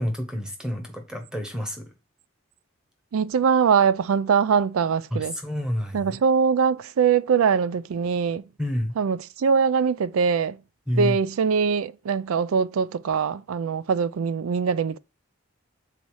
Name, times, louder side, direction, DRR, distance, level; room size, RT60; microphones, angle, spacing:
voice 1, 0.0-1.9 5.1-6.2 8.6-8.9 10.9-11.2, equal, 5° right, 1.0 m, -28 dB
voice 2, 3.1-5.3 5.9-8.4 9.0-10.6 10.9-15.0, right 6 dB, 80° right, 0.4 m, -22 dB
6.9 x 4.1 x 4.7 m
head